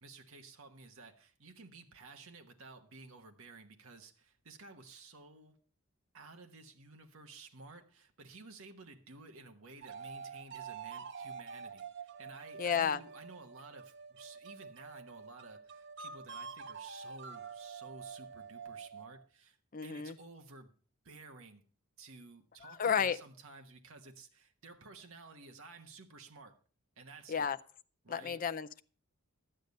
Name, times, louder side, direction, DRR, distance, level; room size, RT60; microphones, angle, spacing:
voice 1, 0.0-5.6 6.1-19.6 19.8-20.7 21.0-21.6 22.0-26.6 27.0-27.5 28.0-28.4, right 3 dB, 70° right, 5 dB, 1.2 m, -54 dB
sound 1, 9.8-19.3, right 5 dB, 50° right, 0.6 m, -47 dB
voice 2, 12.6-13.0 19.7-20.1 22.6-23.2 27.3-27.6 28.1-28.8, left 7 dB, 40° left, 12 dB, 0.5 m, -32 dB
12.0 x 9.0 x 5.3 m, 0.41 s
head